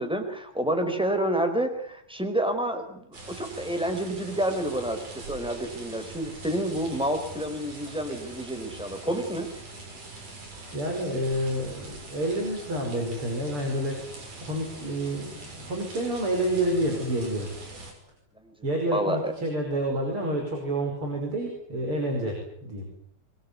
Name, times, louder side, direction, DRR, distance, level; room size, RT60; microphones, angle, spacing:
voice 1, 0.0-9.5 18.4-18.5 18.9-19.3, right 1 dB, ahead, 7 dB, 4.2 m, -29 dB
sound 1, 3.1-17.9, right 2 dB, 65° right, 8.1 m, -43 dB
voice 2, 10.7-14.1 14.4-17.5 18.6-22.9, right 1 dB, 35° right, 2 dB, 6.2 m, -29 dB
23.5 x 23.5 x 9.8 m, 0.70 s
omnidirectional pair, 4.0 m